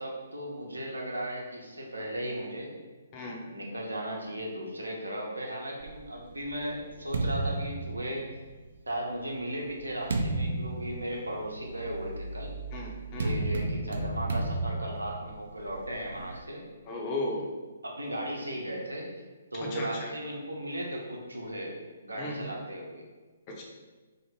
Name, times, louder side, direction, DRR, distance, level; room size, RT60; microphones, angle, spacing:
voice 1, 0.0-2.7 3.5-8.3 8.9-12.5 13.2-16.6 17.8-19.1 19.5-21.8 22.0-23.0, right 1 dB, 75° right, -2 dB, 0.8 m, -36 dB
voice 2, 3.1-3.4 12.7-13.4 16.9-17.4 19.6-19.9 22.2-22.5 23.5-23.6, left 2 dB, 30° left, -1 dB, 0.7 m, -35 dB
sound 1, 5.8-8.6 9.3-16.4, right 2 dB, 55° right, 0.4 m, -33 dB
2.9 x 2.8 x 4.2 m, 1.3 s
figure-of-eight pair, 130°, 0 cm